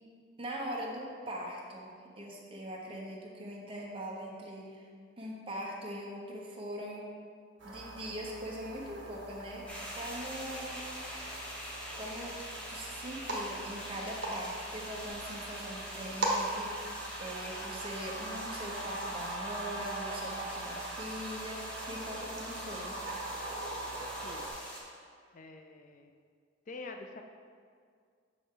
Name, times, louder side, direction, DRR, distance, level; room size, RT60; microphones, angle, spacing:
voice 1, 0.4-4.9 5.2-7.1 7.6-9.7 9.9-10.9 11.9-23.0, equal, 30° right, -2 dB, 1.1 m, -41 dB
sound 1, 7.6-24.5, right 2 dB, 70° right, 1.4 m, -40 dB
sound 2, 9.7-24.8, equal, 5° left, 1.1 m, -44 dB
voice 2, 25.3-26.1 26.7-27.2, left 3 dB, 40° left, 4 dB, 0.4 m, -46 dB
7.0 x 6.4 x 3.8 m, 2.1 s
head